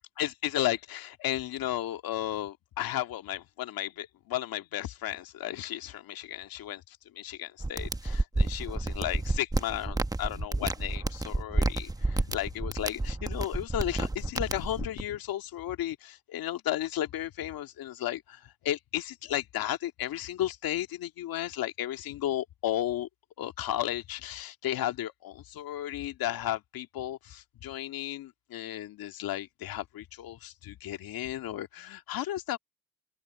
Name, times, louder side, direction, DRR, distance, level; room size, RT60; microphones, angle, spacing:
voice 1, 0.2-23.1 23.4-32.6, left 13 dB, 70° left, 2.1 m, -34 dB
sound 1, 7.6-15.0, right 2 dB, 10° right, 1.0 m, -30 dB
open air
cardioid pair, 85°, 37 cm